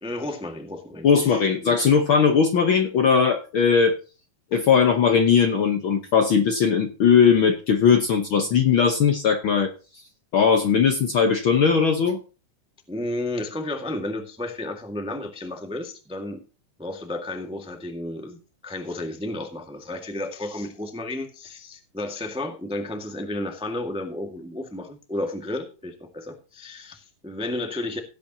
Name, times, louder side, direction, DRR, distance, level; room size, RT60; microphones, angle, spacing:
voice 1, 0.0-1.8 4.5-4.6 12.9-16.4 16.8-28.0, left 1 dB, 5° right, 4 dB, 1.1 m, -32 dB
voice 2, 1.0-4.0 4.5-9.7 10.3-12.2, left 6 dB, 55° left, 5 dB, 1.5 m, -19 dB
17.0 x 8.6 x 2.9 m, 0.33 s
omnidirectional pair, 3.4 m